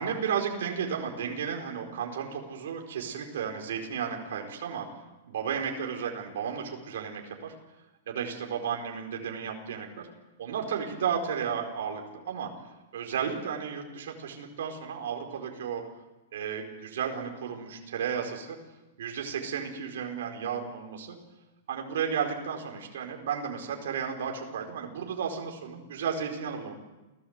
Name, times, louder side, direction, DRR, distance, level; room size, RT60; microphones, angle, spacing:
voice 1, 0.0-4.9 5.3-7.5 8.1-9.9 10.4-12.5 12.9-15.8 16.3-18.6 19.0-21.2 21.7-26.7, right 7 dB, 70° right, 2 dB, 4.9 m, -33 dB
29.5 x 17.5 x 8.2 m, 1.1 s
supercardioid pair, 165°, 0 cm